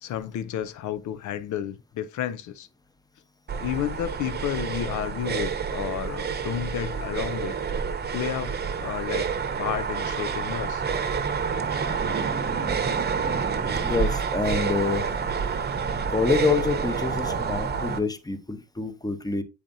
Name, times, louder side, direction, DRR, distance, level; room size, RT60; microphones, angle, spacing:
voice 1, 0.0-2.7 3.6-7.6 8.1-9.3 9.6-10.8, left 10 dB, 75° left, 0.6 m, -31 dB
sound 1, 3.5-18.0, right 6 dB, 35° right, 0.9 m, -28 dB
voice 2, 13.8-15.0 16.1-19.4, left 4 dB, 15° left, 0.9 m, -26 dB
7.9 x 5.0 x 2.7 m
cardioid pair, 90°, 30 cm